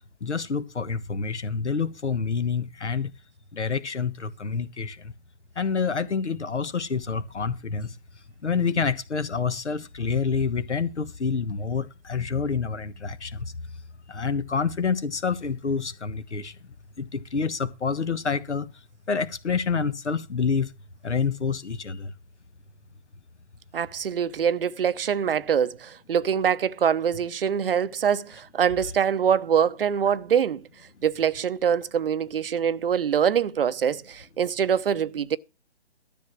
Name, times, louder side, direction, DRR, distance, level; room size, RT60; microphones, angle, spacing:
voice 1, 0.2-3.1 3.5-5.1 5.6-7.9 8.4-13.4 14.1-16.5 17.0-18.7 19.1-20.7 21.0-22.1, left 5 dB, 75° left, 1.4 m, -27 dB
voice 2, 23.7-30.6 31.0-35.4, right 8 dB, 55° right, 0.7 m, -24 dB
13.0 x 6.9 x 6.2 m
figure-of-eight pair, 140°, 34 cm